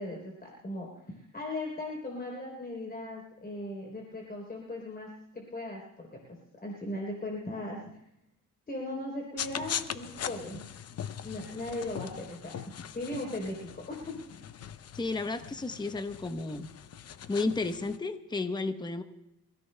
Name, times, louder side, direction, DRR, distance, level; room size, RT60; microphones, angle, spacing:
voice 1, 0.0-8.0 8.7-10.6 10.9-12.6 12.9-14.1, left 1 dB, 30° left, -1 dB, 3.6 m, -38 dB
sound 1, 9.4-18.0, left 9 dB, 50° left, 0.7 m, -41 dB
voice 2, 14.9-16.7 17.3-19.0, left 3 dB, 15° left, 9 dB, 0.9 m, -32 dB
28.0 x 16.5 x 2.2 m, 0.84 s
cardioid pair, 105°, 33 cm